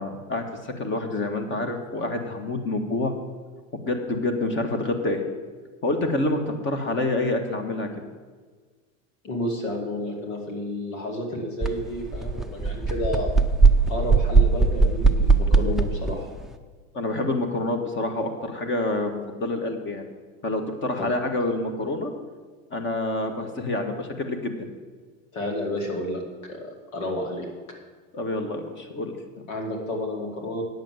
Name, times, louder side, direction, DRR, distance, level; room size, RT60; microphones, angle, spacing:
voice 1, 0.0-3.1 3.8-5.2 5.8-7.9 16.9-20.1 20.4-22.1 22.7-24.5 28.1-29.2, left 2 dB, 30° left, 6 dB, 1.6 m, -27 dB
voice 2, 9.2-13.3 13.9-16.3 21.0-21.1 25.3-27.5 29.5-30.6, left 1 dB, 85° left, 2 dB, 2.7 m, -31 dB
sound 1, 11.6-11.7 12.1-16.2, right 4 dB, ahead, 0.5 m, -19 dB
9.4 x 7.4 x 7.7 m, 1.5 s
hypercardioid pair, 105°, 39 cm